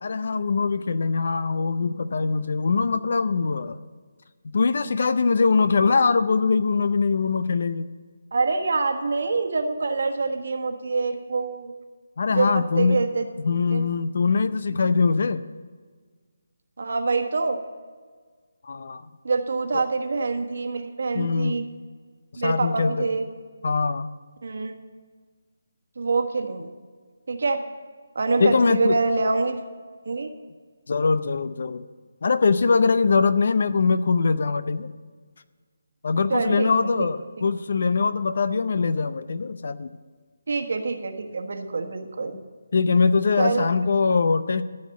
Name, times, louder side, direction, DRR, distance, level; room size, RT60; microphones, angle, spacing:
voice 1, 0.0-3.8 4.5-7.9 12.2-13.0 13.4-15.5 18.6-19.0 19.7-19.8 21.1-21.6 22.4-23.1 23.6-24.1 28.4-29.3 30.9-31.9 32.2-34.9 36.0-39.9 42.7-44.6, left 4 dB, 55° left, 14 dB, 0.6 m, -22 dB
voice 2, 8.3-11.7 12.3-13.3 13.7-13.8 16.8-17.6 19.2-21.7 22.4-23.3 24.4-24.8 26.0-26.7 27.3-27.6 28.1-29.6 30.0-30.3 36.3-37.1 40.5-42.3 43.4-43.7, right 3 dB, 60° right, 5 dB, 1.4 m, -25 dB
14.0 x 6.5 x 8.1 m, 1.5 s
figure-of-eight pair, 150°, 0 cm